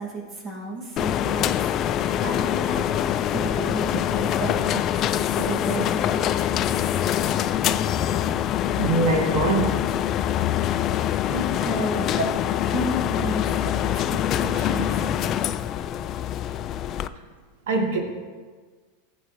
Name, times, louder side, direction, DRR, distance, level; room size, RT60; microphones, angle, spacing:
voice 1, 0.0-1.7 2.2-2.8 3.3-5.0 5.4-6.4 11.3-12.1 12.7-13.6 13.9-15.1, right 1 dB, 30° right, -1 dB, 2.2 m, -32 dB
sound 1, 1.0-17.1, left 10 dB, 40° left, 0.3 m, -24 dB
voice 2, 8.8-9.8 17.7-18.0, right 3 dB, 75° right, 2 dB, 1.8 m, -22 dB
12.5 x 8.0 x 3.2 m, 1.4 s
supercardioid pair, 120°, 0 cm